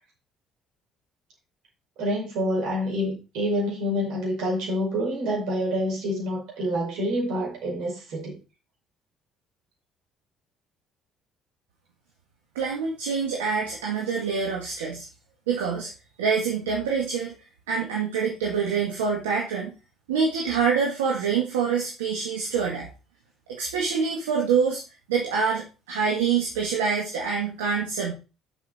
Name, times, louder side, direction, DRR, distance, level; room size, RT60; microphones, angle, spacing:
voice 1, 2.0-8.4, equal, 70° right, 5.2 m, -27 dB
voice 2, 12.6-15.1 15.5-15.9 16.2-17.3 17.7-19.7 20.1-22.9 23.6-24.8 25.1-28.1, right 6 dB, 85° right, 1.8 m, -26 dB
7.4 x 7.1 x 4.3 m
hypercardioid pair, 55°, 0 cm